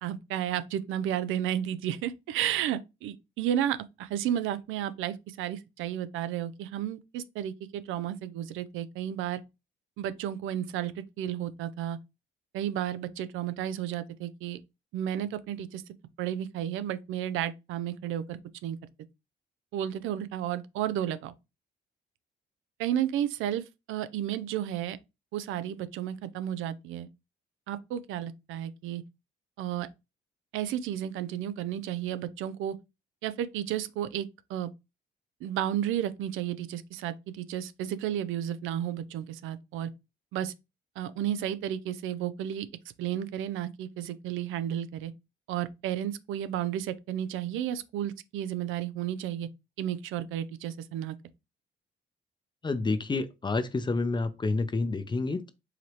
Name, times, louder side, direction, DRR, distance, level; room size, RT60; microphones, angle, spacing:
voice 1, 0.0-9.4 10.0-12.0 12.5-14.6 14.9-15.8 16.2-18.8 19.7-21.3 22.8-25.0 25.3-27.1 27.7-29.0 29.6-29.9 30.5-32.8 33.2-34.7 35.4-39.9 40.3-40.5 41.0-42.7 43.0-45.1 45.5-49.5 49.8-51.2, right 11 dB, 85° right, 0.4 m, -32 dB
voice 2, 52.6-55.5, left 3 dB, 25° left, 0.6 m, -29 dB
4.9 x 2.8 x 3.0 m
cardioid pair, 90°, 20 cm